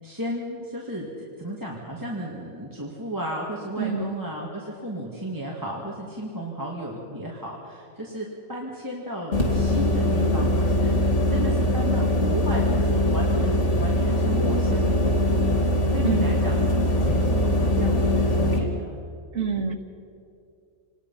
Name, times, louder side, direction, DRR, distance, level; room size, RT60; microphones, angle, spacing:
voice 1, 0.0-1.1 1.4-19.0, equal, 15° right, -4 dB, 2.5 m, -34 dB
voice 2, 3.8-4.2 16.0-16.4 19.3-19.8, right 5 dB, 90° right, 5 dB, 2.0 m, -27 dB
sound 1, 9.3-18.6, left 1 dB, 90° left, 2.8 m, -22 dB
28.0 x 20.0 x 5.8 m, 2.5 s
omnidirectional pair, 1.2 m